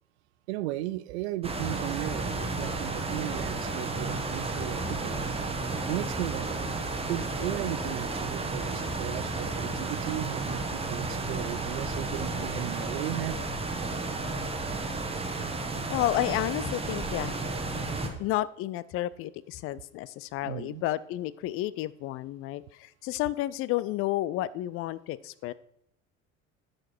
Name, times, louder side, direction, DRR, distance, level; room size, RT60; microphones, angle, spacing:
voice 1, 0.5-5.2 5.9-6.6 7.1-13.4 20.4-20.8, right 16 dB, 60° right, 17 dB, 0.5 m, -36 dB
sound 1, 1.4-18.1, right 3 dB, 15° right, 1.3 m, -32 dB
sound 2, 2.6-8.0, left 2 dB, 20° left, 2.5 m, -47 dB
voice 2, 15.9-17.4 18.0-25.5, left 15 dB, 35° left, 18 dB, 0.5 m, -31 dB
10.5 x 6.6 x 4.5 m, 0.72 s
figure-of-eight pair, 60°, 38 cm